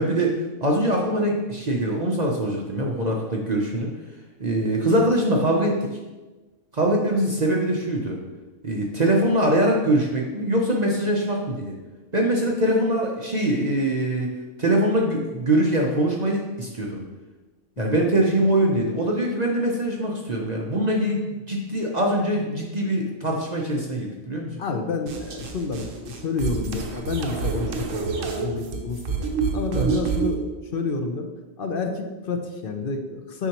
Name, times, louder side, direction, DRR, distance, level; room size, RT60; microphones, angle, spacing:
voice 1, 0.0-3.9 4.4-5.9 6.7-8.2 8.6-11.8 12.1-14.3 14.6-17.0 17.8-24.6 29.7-30.0, right 1 dB, 40° right, -1 dB, 0.7 m, -23 dB
voice 2, 24.6-31.3 31.6-33.5, left 3 dB, 50° left, 4 dB, 0.8 m, -29 dB
sound 1, 25.1-30.4, right 5 dB, 75° right, 1.2 m, -28 dB
8.2 x 5.6 x 3.0 m, 1.2 s
omnidirectional pair, 1.4 m